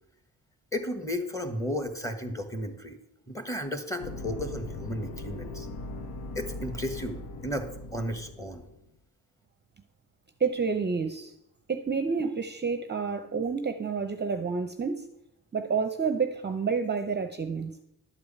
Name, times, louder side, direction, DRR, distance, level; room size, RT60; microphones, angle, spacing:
voice 1, 0.7-3.0 3.3-5.7 6.3-8.6, left 1 dB, 10° left, 6 dB, 1.5 m, -34 dB
sound 1, 4.0-8.9, left 2 dB, 80° left, 1.1 m, -39 dB
voice 2, 10.4-11.3 11.7-15.1 15.5-17.8, right 5 dB, 30° right, 7 dB, 0.6 m, -29 dB
11.5 x 4.8 x 8.5 m, 0.83 s
wide cardioid pair, 120°, 37 cm